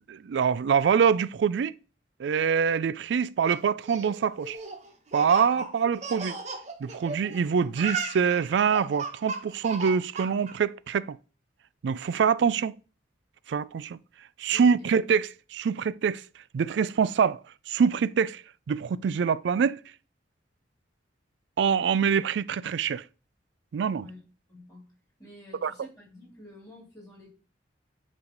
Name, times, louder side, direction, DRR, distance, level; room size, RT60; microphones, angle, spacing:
voice 1, 0.1-1.7 2.2-4.6 5.1-6.4 6.8-11.2 11.8-12.7 13.5-14.0 14.4-16.2 16.5-17.4 17.7-18.4 18.7-19.8 21.6-23.0 23.7-24.1 25.6-25.7, right 6 dB, 70° right, 0.3 m, -25 dB
Laughter, 3.6-7.4 7.7-10.5, right 3 dB, 35° right, 1.2 m, -35 dB
voice 2, 14.5-15.0 24.0-24.2 24.5-24.9 25.2-27.3, left 1 dB, 20° left, 2.7 m, -49 dB
9.6 x 3.2 x 5.1 m
head